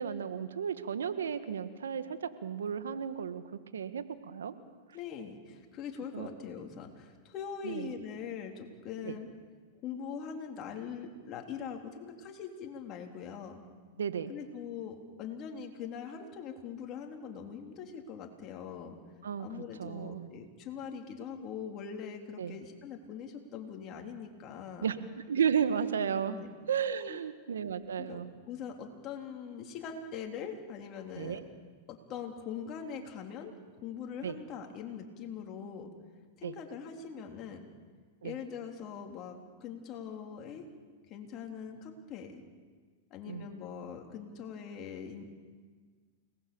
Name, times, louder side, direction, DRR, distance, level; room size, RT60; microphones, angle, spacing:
voice 1, 0.0-3.4 3.7-4.5 6.1-6.3 7.6-7.9 9.0-9.2 14.0-14.3 19.2-19.5 19.8-20.3 22.4-22.6 24.8-25.0 25.3-26.3 26.7-28.3 31.2-31.5 34.2-34.4 36.4-36.6 38.2-38.4 43.3-43.5, right 7 dB, 85° right, 11 dB, 1.5 m, -33 dB
voice 2, 4.9-9.3 9.8-13.6 14.3-19.0 19.4-24.9 26.3-26.5 27.1-27.2 28.0-28.2 28.5-31.4 31.9-33.5 33.8-35.9 36.4-37.7 38.2-40.6 41.1-42.4 43.1-45.2, left 7 dB, 40° left, 2 dB, 3.5 m, -42 dB
29.5 x 19.5 x 7.0 m, 1.5 s
hypercardioid pair, 110°, 0 cm